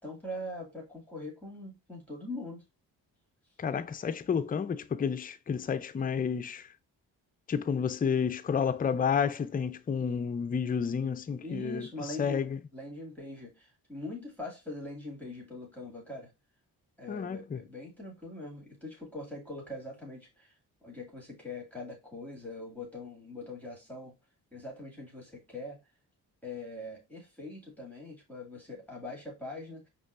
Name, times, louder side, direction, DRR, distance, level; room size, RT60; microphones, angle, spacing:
voice 1, 0.0-2.6 11.4-16.3 17.0-20.5 20.8-24.1 24.5-25.8 26.4-29.9, left 2 dB, 5° left, 2.2 m, -42 dB
voice 2, 3.6-6.7 7.5-12.6 17.1-17.6, left 6 dB, 20° left, 0.4 m, -31 dB
5.1 x 3.1 x 2.5 m
hypercardioid pair, 40°, 46 cm